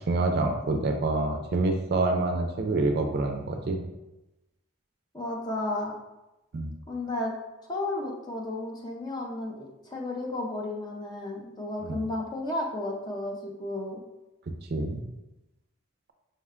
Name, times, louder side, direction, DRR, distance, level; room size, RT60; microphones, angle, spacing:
voice 1, 0.1-3.8 6.5-6.7 11.8-12.0 14.6-15.0, right 2 dB, 50° right, 4 dB, 0.4 m, -27 dB
voice 2, 5.1-5.9 6.9-7.3 7.6-14.0, left 2 dB, 20° left, 0 dB, 0.5 m, -33 dB
5.4 x 2.2 x 3.6 m, 0.99 s
head